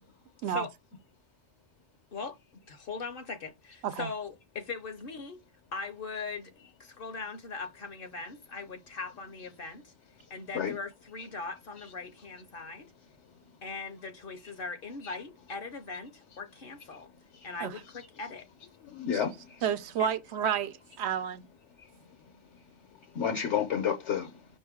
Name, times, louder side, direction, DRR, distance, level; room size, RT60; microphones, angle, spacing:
voice 1, 2.7-5.4 5.7-6.5 6.8-9.9 10.3-12.9 13.6-17.1 17.4-18.5 20.0-20.1, left 4 dB, 60° left, 0.8 m, -40 dB
voice 2, 18.8-19.6 21.8-21.9 23.1-24.3, left 8 dB, 80° left, 1.1 m, -31 dB
voice 3, 19.6-21.4, right 8 dB, 75° right, 0.8 m, -30 dB
5.3 x 2.6 x 3.5 m
omnidirectional pair, 1.2 m